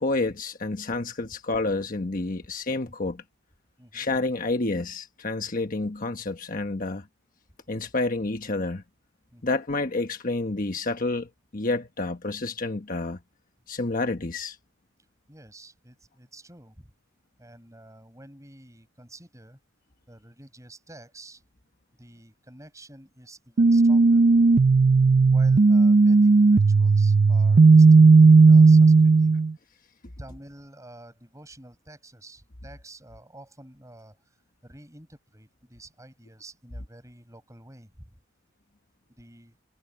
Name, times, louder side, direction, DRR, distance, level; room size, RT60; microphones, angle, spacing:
voice 1, 0.0-3.2 3.9-7.1 7.7-8.8 9.4-13.2 13.7-14.6, left 2 dB, 40° left, 1.2 m, -29 dB
voice 2, 15.3-16.9 17.4-19.6 20.1-21.4 22.0-24.5 25.3-29.3 30.2-34.3 34.6-38.2 39.2-39.6, right 1 dB, 15° right, 7.5 m, -49 dB
sound 1, 23.6-29.5, right 4 dB, 40° right, 0.4 m, -15 dB
head